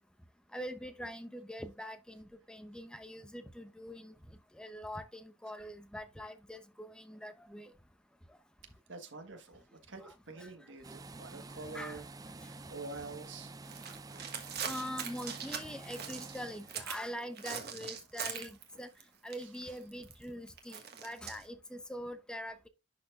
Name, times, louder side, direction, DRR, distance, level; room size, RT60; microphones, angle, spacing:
voice 1, 0.5-4.1 4.5-7.7 10.0-10.5 11.7-12.0 14.6-18.9 19.2-22.7, equal, 5° left, 0.8 m, -43 dB
voice 2, 8.6-12.1 12.4-13.5 18.7-18.8 19.4-19.5, right 3 dB, 85° right, 1.4 m, -47 dB
sound 1, 10.8-17.0, right 3 dB, 20° right, 0.4 m, -49 dB
sound 2, 13.6-17.1 17.3-19.0 19.3-21.4, right 7 dB, 60° right, 1.4 m, -42 dB
11.0 x 4.2 x 2.4 m
head